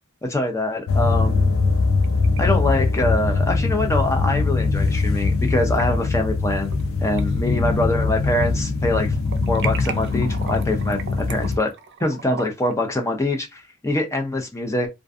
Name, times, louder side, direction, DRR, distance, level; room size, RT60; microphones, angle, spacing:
voice 1, 0.3-1.5 2.4-6.7 7.0-9.1 9.5-11.7 12.0-14.9, left 1 dB, 15° left, 0.4 m, -24 dB
sound 1, 0.9-11.6, left 3 dB, 70° left, 0.5 m, -22 dB
sound 2, 1.7-2.4 2.7-2.8 4.3-4.4 5.5-5.8 6.4-6.9 7.2-8.5 8.8-12.8, right 7 dB, 55° right, 0.4 m, -37 dB
2.5 x 2.4 x 2.3 m
head